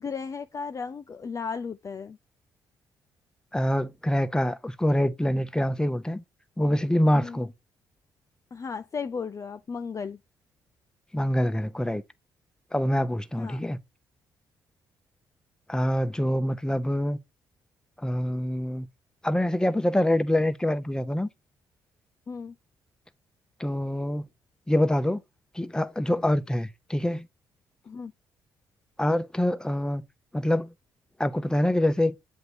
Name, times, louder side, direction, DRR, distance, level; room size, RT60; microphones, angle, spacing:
voice 1, 0.0-2.2 7.1-7.5 8.5-10.2 13.4-13.6 22.3-22.6 27.9-28.1, left 5 dB, 35° left, 0.4 m, -35 dB
voice 2, 3.5-6.2 6.6-7.5 11.1-12.0 12.7-13.8 15.7-17.2 18.0-18.9 19.2-21.3 23.6-24.2 24.7-25.2 25.5-27.3 29.0-30.0 30.3-30.7 31.2-32.1, left 1 dB, 10° left, 0.7 m, -25 dB
7.8 x 2.8 x 4.8 m
hypercardioid pair, 50°, 9 cm